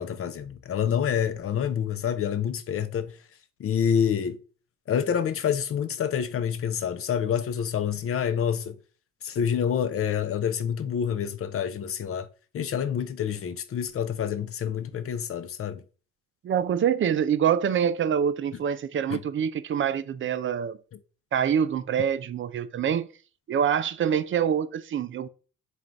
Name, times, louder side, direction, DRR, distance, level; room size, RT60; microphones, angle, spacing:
voice 1, 0.0-3.1 3.6-4.4 4.9-8.7 9.2-12.3 12.5-15.8 19.1-19.2, left 8 dB, 50° left, 0.6 m, -27 dB
voice 2, 16.4-20.8 21.3-23.1 23.5-25.3, right 8 dB, 40° right, 0.5 m, -25 dB
3.8 x 2.5 x 4.4 m
cardioid pair, 90°, 30 cm